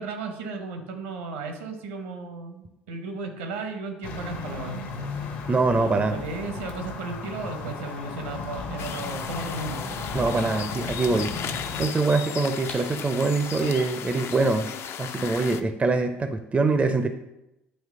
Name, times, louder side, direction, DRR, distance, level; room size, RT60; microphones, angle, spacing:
voice 1, 0.0-5.0 5.7-9.9, right 3 dB, 70° right, 5 dB, 0.8 m, -35 dB
sound 1, 4.0-11.9, left 3 dB, 60° left, 0.9 m, -35 dB
voice 2, 5.5-6.1 10.1-11.3 11.8-14.7 15.0-17.1, right 3 dB, 20° right, 8 dB, 0.5 m, -24 dB
sound 2, 8.8-15.6, left 8 dB, 45° left, 0.4 m, -36 dB
sound 3, 12.7-15.2, left 3 dB, 75° left, 1.3 m, -43 dB
8.8 x 3.0 x 3.7 m, 0.89 s
figure-of-eight pair, 60°, 6 cm